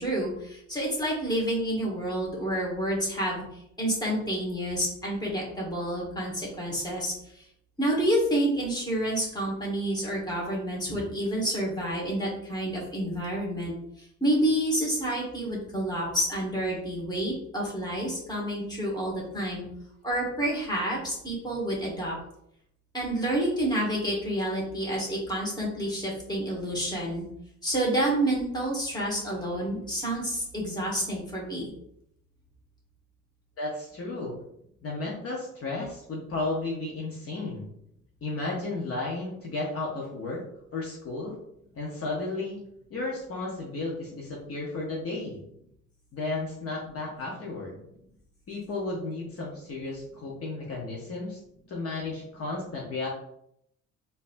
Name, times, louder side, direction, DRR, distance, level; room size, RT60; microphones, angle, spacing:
voice 1, 0.0-3.4 3.8-7.4 7.8-19.6 20.0-22.1 22.9-27.3 27.6-31.7, right 1 dB, 15° left, -3 dB, 1.4 m, -29 dB
voice 2, 33.6-34.4 34.8-37.7 38.2-40.4 40.7-41.4 41.7-42.6 42.9-45.4 46.1-47.8 48.5-51.4 51.7-53.1, left 2 dB, 50° left, -4 dB, 0.9 m, -33 dB
3.9 x 2.7 x 2.6 m, 0.76 s
cardioid pair, 90°, 30 cm